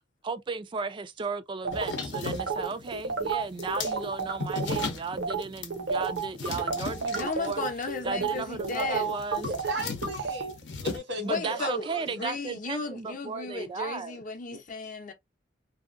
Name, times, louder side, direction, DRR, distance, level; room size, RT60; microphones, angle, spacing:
voice 1, 0.2-7.6 8.0-9.5 11.2-14.2, right 4 dB, 25° right, 0.3 m, -35 dB
sound 1, 1.6-4.9 5.2-5.4 5.7-10.5, right 5 dB, 70° right, 0.7 m, -31 dB
sound 2, 1.7-11.0, left 4 dB, 80° left, 0.7 m, -38 dB
voice 2, 7.2-9.1 11.2-15.1, left 4 dB, 45° left, 0.6 m, -35 dB
voice 3, 9.4-10.5 10.8-12.3 14.5-14.6, equal, 85° right, 1.4 m, -37 dB
2.7 x 2.5 x 2.5 m
head